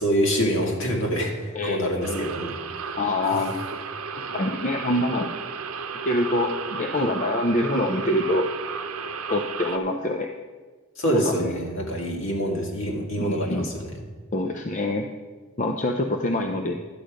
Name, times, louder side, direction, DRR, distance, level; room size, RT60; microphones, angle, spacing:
voice 1, 0.0-2.6 11.0-14.0, equal, 60° left, 0 dB, 2.0 m, -25 dB
voice 2, 1.5-2.3 3.0-3.8 4.3-5.3 6.0-8.5 9.3-10.3 11.1-11.5 13.2-13.7 14.3-15.1 15.6-16.7, left 1 dB, 35° left, 4 dB, 0.5 m, -25 dB
sound 1, 2.0-9.8, right 5 dB, 75° right, 0.7 m, -34 dB
11.5 x 8.4 x 5.0 m, 1.3 s
head